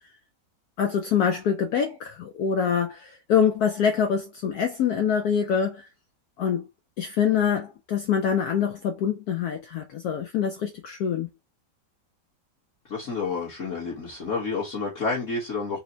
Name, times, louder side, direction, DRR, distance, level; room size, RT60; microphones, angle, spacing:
voice 1, 0.8-5.9 6.4-6.7 7.0-11.3, left 7 dB, 70° left, 1.0 m, -25 dB
voice 2, 12.9-15.8, left 4 dB, 45° left, 1.4 m, -29 dB
4.3 x 2.1 x 3.7 m
omnidirectional pair, 1.9 m